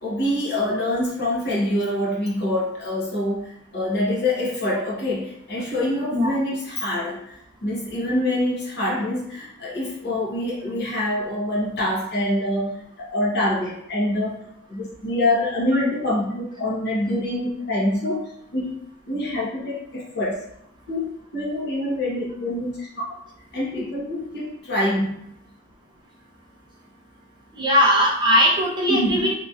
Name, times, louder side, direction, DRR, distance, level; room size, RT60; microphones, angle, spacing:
voice 1, 0.0-7.3 7.6-12.7 13.0-14.4 14.7-18.2 18.5-18.7 19.1-20.4 20.9-23.0 23.5-25.2 28.9-29.2, left 1 dB, 50° left, -5 dB, 1.0 m, -25 dB
voice 2, 27.6-29.3, equal, 20° right, -4 dB, 0.5 m, -19 dB
3.0 x 2.7 x 2.4 m, 0.76 s
head